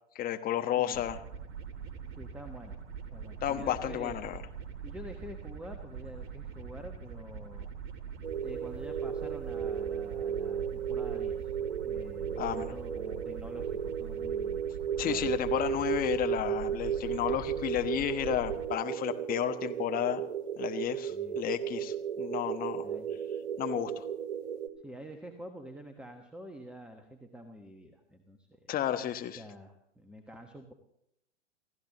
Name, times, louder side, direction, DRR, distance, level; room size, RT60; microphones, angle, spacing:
voice 1, 0.1-1.2 3.4-4.4 12.4-12.7 15.0-20.2 20.6-22.9 23.6-24.0 28.7-29.4, left 11 dB, 25° left, 7 dB, 1.2 m, -32 dB
sound 1, 0.9-18.7, right 6 dB, 35° right, 2.6 m, -43 dB
voice 2, 2.2-2.8 3.1-4.2 4.8-7.7 8.4-11.5 11.9-14.6 15.0-15.4 21.1-21.4 22.8-23.1 24.8-28.7 29.4-30.7, equal, 5° right, 5 dB, 1.3 m, -47 dB
sound 2, 8.2-24.7, right 8 dB, 65° right, 2.1 m, -35 dB
28.0 x 15.0 x 3.0 m, 0.75 s
figure-of-eight pair, 105°, 36 cm